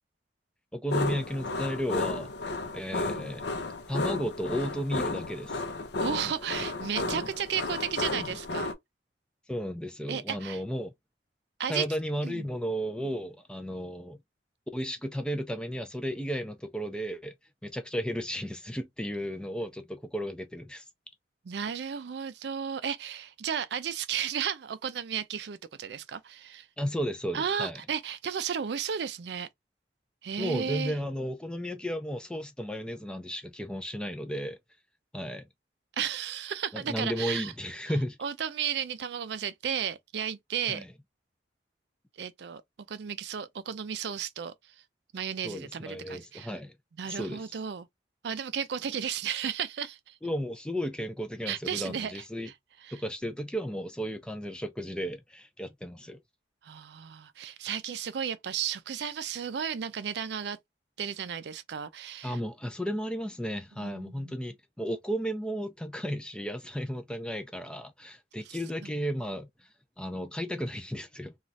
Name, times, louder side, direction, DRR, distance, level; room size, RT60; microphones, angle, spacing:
voice 1, 0.7-2.3 2.7-3.5 3.9-5.6 9.5-10.9 11.7-14.2 14.7-17.3 17.6-20.9 26.8-27.8 30.4-34.6 35.1-35.5 36.7-38.2 40.7-40.9 45.4-46.8 47.1-47.5 50.2-52.5 52.9-56.2 62.2-69.7 70.0-71.3, equal, 5° left, 0.4 m, -34 dB
sound 1, 0.9-8.7, left 2 dB, 70° left, 0.6 m, -33 dB
voice 2, 6.0-8.7 10.1-10.6 11.6-11.9 12.2-12.4 21.5-26.7 27.3-29.5 30.2-30.9 36.0-37.5 38.2-40.8 42.2-42.6 42.9-44.5 45.1-46.5 47.0-47.9 48.2-50.2 51.5-52.1 52.9-53.0 56.6-60.6 61.0-62.4 63.8-64.3 68.8-68.9, right 8 dB, 70° right, 0.4 m, -34 dB
3.1 x 2.4 x 2.6 m
head